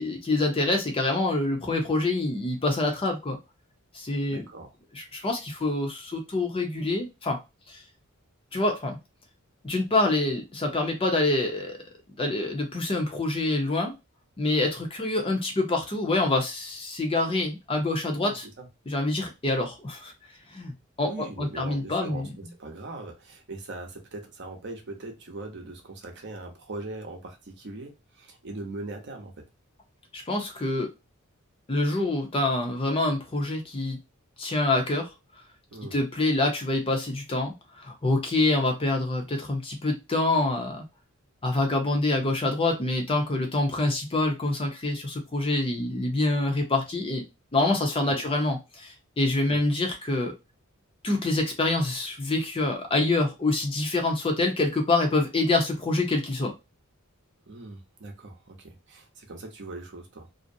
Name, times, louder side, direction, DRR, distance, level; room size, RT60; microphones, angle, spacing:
voice 1, 0.0-3.4 3.9-4.4 5.0-7.4 7.7-7.8 8.5-9.0 9.6-11.8 12.2-13.9 14.4-18.4 18.9-20.1 20.5-20.7 21.0-22.3 30.1-30.9 31.7-34.0 34.4-35.1 35.9-40.8 41.4-47.2 47.5-50.3 51.0-56.5, left 2 dB, 25° left, 0.5 m, -26 dB
voice 2, 4.3-4.7 18.2-18.7 21.0-29.5 35.7-35.9 48.1-48.3 49.5-49.6 57.5-60.3, right 2 dB, 55° right, 0.7 m, -40 dB
2.5 x 2.0 x 2.5 m
head